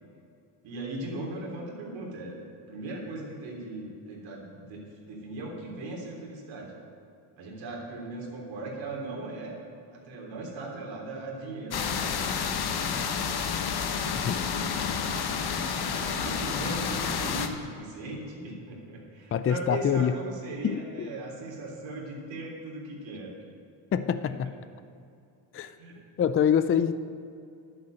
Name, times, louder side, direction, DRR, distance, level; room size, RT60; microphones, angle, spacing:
voice 1, 0.6-2.4 2.7-6.7 7.4-9.6 9.9-12.2 14.2-15.0 15.5-23.3 24.2-24.3 25.8-26.0, right 2 dB, 65° right, -1 dB, 3.6 m, -38 dB
sound 1, 11.7-17.5, left 6 dB, 50° left, 1.2 m, -30 dB
voice 2, 19.3-20.2 20.6-21.1 23.9-24.6 25.5-25.7 26.2-26.9, left 8 dB, 30° left, 12 dB, 0.5 m, -25 dB
11.0 x 8.1 x 7.8 m, 2.5 s
cardioid pair, 95°, 48 cm